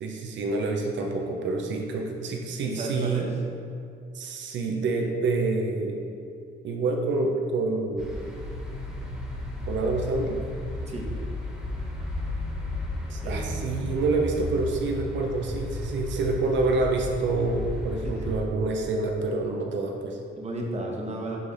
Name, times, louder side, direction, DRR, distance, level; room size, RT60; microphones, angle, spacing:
voice 1, 0.0-3.3 4.1-6.0 6.6-8.1 9.7-10.4 13.1-20.2, right 3 dB, 70° right, 2 dB, 0.7 m, -27 dB
voice 2, 2.6-3.3 10.9-11.1 13.2-13.4 18.0-18.3 20.4-21.5, right 1 dB, 35° right, -1 dB, 1.2 m, -33 dB
sound 1, 8.0-18.4, left 1 dB, 5° right, 1.5 m, -34 dB
5.8 x 3.3 x 5.4 m, 2.5 s
cardioid pair, 90°, 20 cm